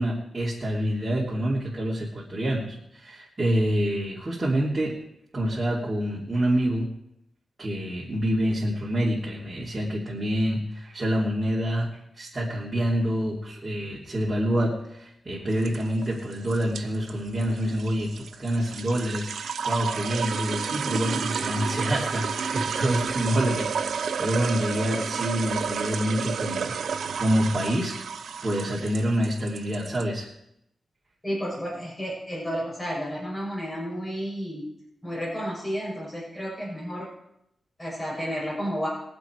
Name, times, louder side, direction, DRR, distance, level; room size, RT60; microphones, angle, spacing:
voice 1, 0.0-5.0 5.3-6.9 7.6-11.9 12.2-28.0 28.4-30.3, equal, 30° right, -6 dB, 3.4 m, -27 dB
sound 1, 15.5-30.0, right 6 dB, 80° right, 0.7 m, -31 dB
voice 2, 31.2-34.7 35.0-37.1 37.8-38.9, equal, 20° left, -6 dB, 7.2 m, -31 dB
22.5 x 7.8 x 4.8 m, 0.78 s
cardioid pair, 75°, 0 cm